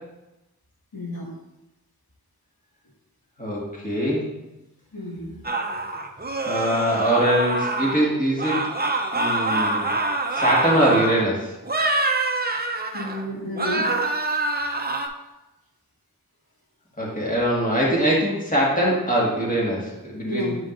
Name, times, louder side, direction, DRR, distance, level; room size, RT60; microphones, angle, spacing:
voice 1, 0.9-1.3 4.9-5.4 12.9-13.9 20.2-20.6, equal, 90° left, -6 dB, 1.9 m, -31 dB
voice 2, 3.4-4.3 6.5-8.7 9.1-9.9 10.3-11.5 17.0-20.5, equal, 25° left, -4 dB, 1.8 m, -22 dB
sound 1, 5.4-8.1 8.4-11.3 11.6-13.2 13.6-15.1, right 2 dB, 25° right, 0.6 m, -25 dB
7.9 x 5.1 x 2.6 m, 0.97 s
wide cardioid pair, 45°, 35 cm